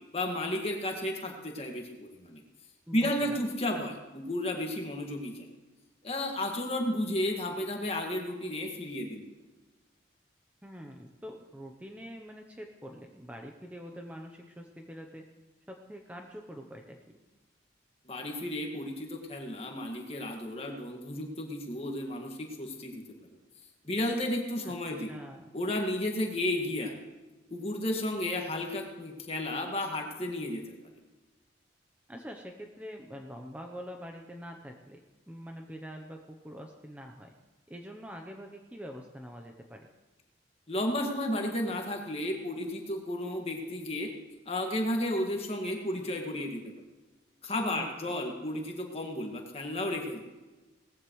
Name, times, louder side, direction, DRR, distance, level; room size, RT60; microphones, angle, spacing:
voice 1, 0.1-2.4 2.9-5.3 6.0-9.2 18.1-23.0 23.8-25.1 25.5-26.9 27.5-30.8 40.7-44.1 44.5-46.7 47.4-50.2, left 1 dB, 30° left, 1 dB, 2.0 m, -33 dB
voice 2, 2.9-3.4 10.6-15.2 15.7-17.2 24.6-25.5 32.1-37.3 37.7-39.9 47.8-48.1, equal, 10° right, 2 dB, 0.8 m, -45 dB
19.0 x 15.0 x 3.2 m, 1.2 s
head